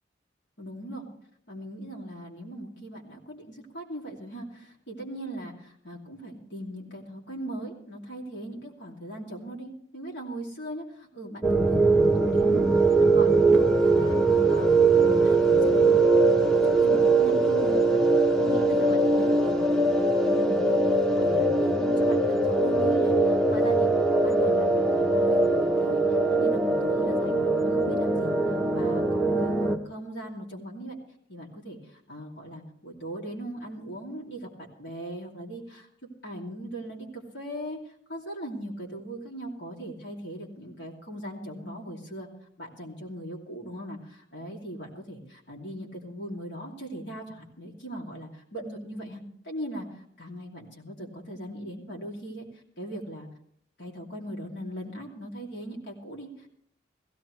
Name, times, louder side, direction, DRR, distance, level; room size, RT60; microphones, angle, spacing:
voice 1, 0.6-1.0 1.5-14.2 14.5-16.0 16.3-31.0 31.3-34.5 34.8-35.9 36.2-42.3 42.6-52.5 52.8-53.3 53.8-56.5, right 1 dB, 65° left, -1 dB, 2.7 m, -39 dB
sound 1, 11.4-29.8, right 2 dB, 5° left, 0.8 m, -22 dB
16.5 x 16.0 x 3.2 m, 0.66 s
head